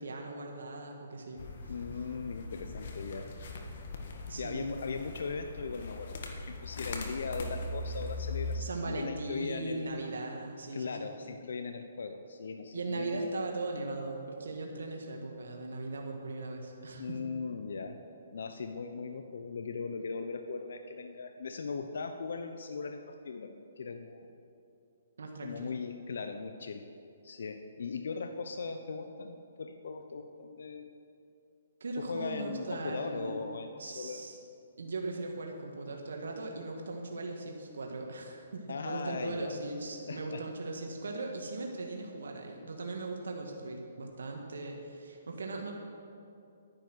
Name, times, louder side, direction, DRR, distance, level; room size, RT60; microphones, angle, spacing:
voice 1, 0.0-1.7 4.3-4.8 8.6-11.1 12.7-17.2 25.2-25.7 31.8-33.4 33.8-34.4 34.8-45.7, right 2 dB, 80° right, 1 dB, 1.7 m, -39 dB
sound 1, 1.4-8.6, left 3 dB, 60° left, 1.7 m, -40 dB
voice 2, 1.7-3.3 4.4-9.9 10.7-13.3 17.0-18.0 18.3-24.3 25.4-26.9 27.2-30.9 32.0-34.2 38.7-39.6 40.1-40.4, left 4 dB, 75° left, 7 dB, 0.8 m, -39 dB
12.0 x 9.9 x 6.2 m, 2.6 s
hypercardioid pair, 155°, 0 cm